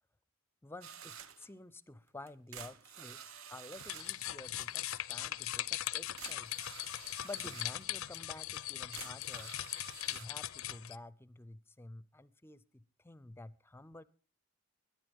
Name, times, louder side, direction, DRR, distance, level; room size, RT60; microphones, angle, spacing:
voice 1, 0.6-3.2 3.5-6.5 7.2-9.5 10.1-14.0, left 2 dB, 10° left, 18 dB, 0.5 m, -51 dB
sound 1, 0.8-1.5 2.3-4.2 5.8-5.9 6.2-7.9 8.5-8.6 8.9-10.3, right 8 dB, 75° right, 0.9 m, -50 dB
sound 2, 3.8-11.0, left 13 dB, 75° left, 0.6 m, -40 dB
21.5 x 10.5 x 3.6 m, 0.36 s
head